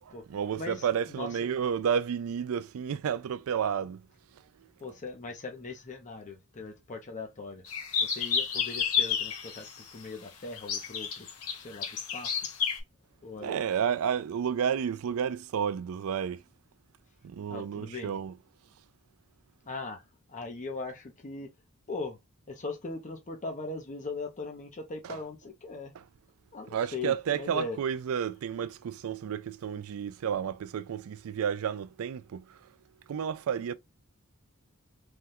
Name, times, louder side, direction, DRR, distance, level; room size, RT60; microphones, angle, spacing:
voice 1, 0.0-4.0 13.4-16.4 17.2-18.3 26.7-32.6 33.1-33.8, right 8 dB, 70° right, 0.3 m, -31 dB
voice 2, 0.5-1.4 4.8-7.7 8.0-12.4 13.2-13.5 17.5-18.2 19.6-20.0 20.3-21.5 21.9-22.2 22.5-25.9 26.5-27.8, left 3 dB, 35° left, 0.7 m, -40 dB
sound 1, 7.6-9.8 10.6-12.8, left 7 dB, 75° left, 0.9 m, -30 dB
3.4 x 2.3 x 2.6 m
head